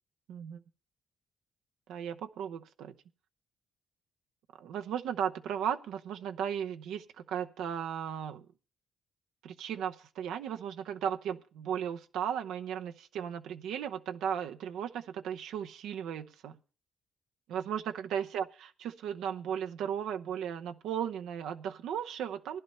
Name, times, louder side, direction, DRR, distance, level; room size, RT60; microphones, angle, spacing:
voice 1, 0.3-0.6 1.9-2.9 4.6-8.5 9.4-16.5 17.5-22.6, right 8 dB, 85° right, 7 dB, 0.8 m, -36 dB
15.5 x 11.0 x 4.3 m, 0.37 s
cardioid pair, 90°, 0 cm